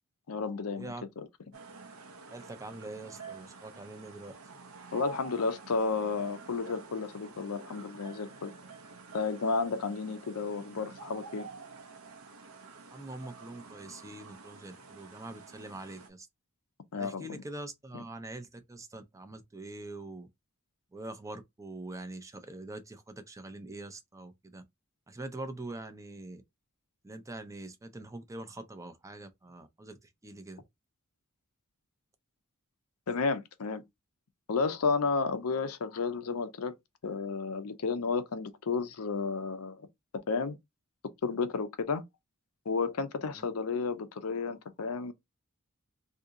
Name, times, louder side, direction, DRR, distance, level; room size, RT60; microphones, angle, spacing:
voice 1, 0.3-1.3 4.9-8.5 9.1-11.5 16.9-17.4 17.9-18.0 33.1-33.8 34.5-36.7 37.0-39.9 40.3-40.6 41.2-42.0 42.7-45.1, left 4 dB, 85° left, 0.6 m, -32 dB
sound 1, 1.5-16.1, right 4 dB, 70° right, 0.8 m, -49 dB
voice 2, 2.3-4.3 12.9-16.3 16.9-20.3 20.9-24.6 25.1-26.4 27.0-30.0 30.2-30.6 43.4-43.5, right 2 dB, 15° right, 0.5 m, -44 dB
2.7 x 2.7 x 3.7 m
head